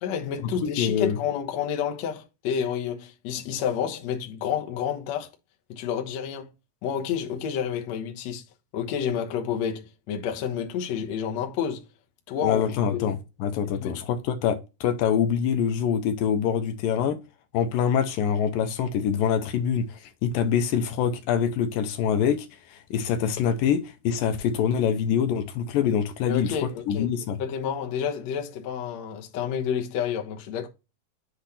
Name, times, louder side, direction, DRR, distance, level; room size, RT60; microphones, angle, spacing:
voice 1, 0.0-5.3 5.7-6.5 6.8-8.4 8.7-11.8 12.3-12.6 12.9-13.1 13.7-13.9 26.3-27.1 27.4-30.7, left 8 dB, 60° left, 2.0 m, -29 dB
voice 2, 0.8-1.2 12.4-17.2 17.5-26.6 26.9-27.4, left 8 dB, 80° left, 2.4 m, -25 dB
8.0 x 3.3 x 4.1 m
omnidirectional pair, 4.0 m